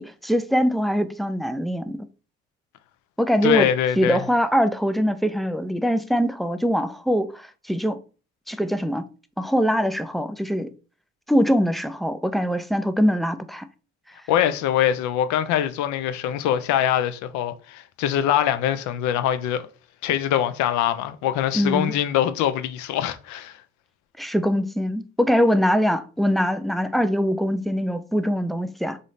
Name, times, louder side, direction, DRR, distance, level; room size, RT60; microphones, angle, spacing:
voice 1, 0.0-2.0 3.2-3.7 4.0-8.0 8.5-9.0 9.4-10.7 11.3-13.7 21.5-21.9 24.2-29.0, equal, ahead, 0.3 m, -22 dB
voice 2, 3.4-4.3 14.3-19.6 20.0-23.6, left 10 dB, 55° left, 0.6 m, -23 dB
4.0 x 3.8 x 3.1 m
figure-of-eight pair, 45°, 35 cm